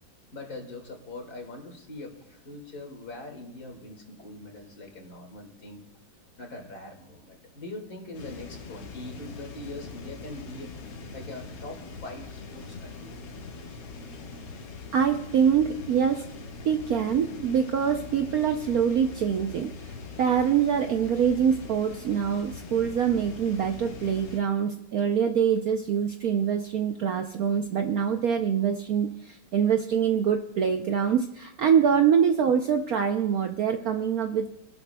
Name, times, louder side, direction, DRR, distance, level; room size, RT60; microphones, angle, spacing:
voice 1, 0.3-5.8 6.4-10.7 11.1-13.1, left 2 dB, 50° left, 1 dB, 2.6 m, -42 dB
sound 1, 8.1-24.4, left 4 dB, 85° left, 2.2 m, -42 dB
voice 2, 14.9-16.2 16.6-34.5, right 7 dB, 65° right, 5 dB, 0.9 m, -24 dB
26.5 x 12.0 x 2.2 m, 0.81 s
omnidirectional pair, 2.1 m